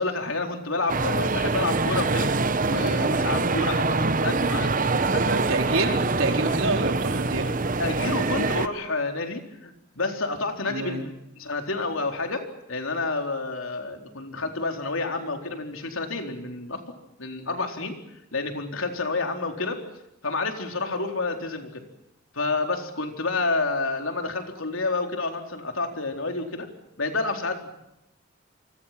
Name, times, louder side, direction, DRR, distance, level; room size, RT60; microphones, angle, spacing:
voice 1, 0.0-2.3 2.7-5.3 7.8-11.1 11.4-16.8 17.2-18.0 18.3-19.8 20.2-21.8 22.3-26.7 27.0-27.8, left 3 dB, 75° left, 4 dB, 4.1 m, -29 dB
sound 1, 0.9-8.7, right 3 dB, 40° right, 1.0 m, -24 dB
voice 2, 5.0-7.5 10.7-11.1, right 2 dB, 75° right, 3 dB, 4.3 m, -28 dB
29.0 x 25.0 x 6.0 m, 0.85 s
head